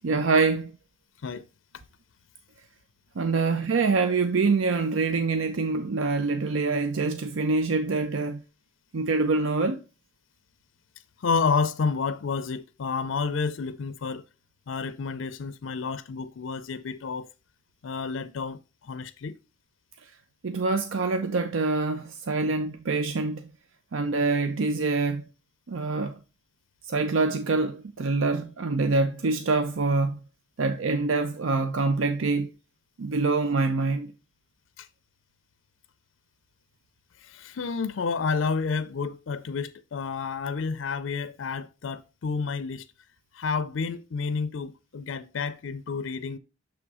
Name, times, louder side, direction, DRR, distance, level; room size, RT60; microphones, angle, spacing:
voice 1, 0.0-0.7 3.2-8.4 8.9-9.8 20.4-23.4 23.9-25.2 25.7-26.1 26.9-30.2 30.6-32.5 33.0-34.1, right 3 dB, 85° right, 0.6 m, -25 dB
voice 2, 11.2-14.2 14.7-17.3 17.8-19.4 34.8-34.9 37.2-42.9 43.3-46.4, left 5 dB, 80° left, 0.4 m, -30 dB
7.1 x 3.1 x 4.7 m
head